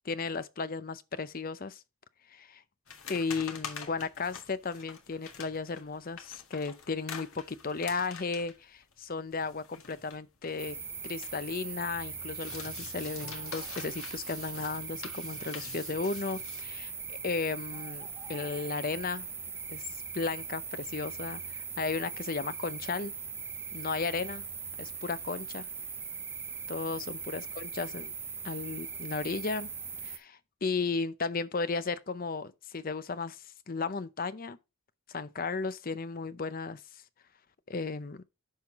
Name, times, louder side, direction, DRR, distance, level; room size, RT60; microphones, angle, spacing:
voice 1, 0.0-1.8 2.3-2.6 3.1-10.8 11.0-19.3 19.7-19.8 20.1-23.1 23.7-24.4 24.8-25.7 26.7-28.1 28.4-29.7 30.0-34.6 35.1-36.8 37.7-38.2, left 4 dB, 40° left, 0.6 m, -35 dB
sound 1, 2.9-11.6 11.9-16.6, left 6 dB, 75° left, 1.7 m, -46 dB
sound 2, 10.6-30.2, right 5 dB, 10° right, 0.6 m, -40 dB
10.5 x 5.7 x 3.0 m
head